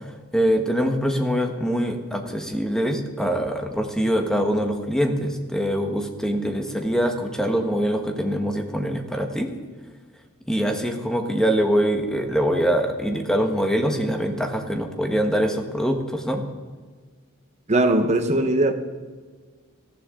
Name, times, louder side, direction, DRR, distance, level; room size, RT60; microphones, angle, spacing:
voice 1, 0.0-9.5 10.5-16.4, equal, 5° left, 4 dB, 1.3 m, -24 dB
voice 2, 17.7-18.7, right 1 dB, 30° right, 7 dB, 1.2 m, -19 dB
18.5 x 13.5 x 3.8 m, 1.5 s
head